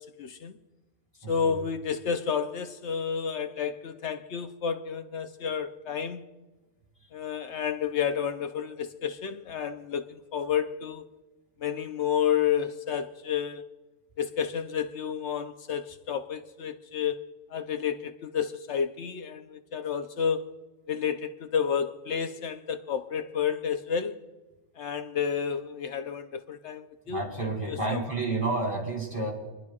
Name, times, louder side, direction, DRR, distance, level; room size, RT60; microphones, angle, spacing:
voice 1, 0.2-0.6 1.3-6.2 7.1-11.0 11.6-13.6 14.2-17.2 17.5-20.5 20.9-24.2 24.8-28.0, left 7 dB, 70° left, 1.0 m, -30 dB
voice 2, 1.2-1.6 27.1-29.3, right 3 dB, 25° right, 3.5 m, -30 dB
28.0 x 11.0 x 2.4 m
omnidirectional pair, 1.2 m